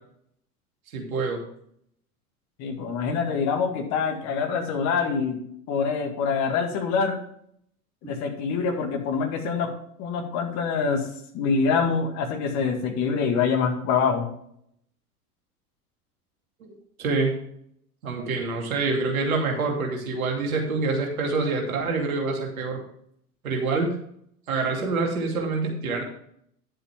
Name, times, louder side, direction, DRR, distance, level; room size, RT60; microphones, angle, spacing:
voice 1, 0.9-1.4 8.0-8.1 16.6-16.7 17.0-17.3 18.0-22.8 23.4-23.9 24.5-26.0, right 3 dB, 60° right, 1 dB, 2.8 m, -26 dB
voice 2, 2.6-5.4 5.7-7.2 8.0-9.7 10.0-11.1 11.3-14.3, left 5 dB, 35° left, 4 dB, 2.1 m, -25 dB
11.0 x 7.6 x 3.6 m, 0.68 s
figure-of-eight pair, 90°, 46 cm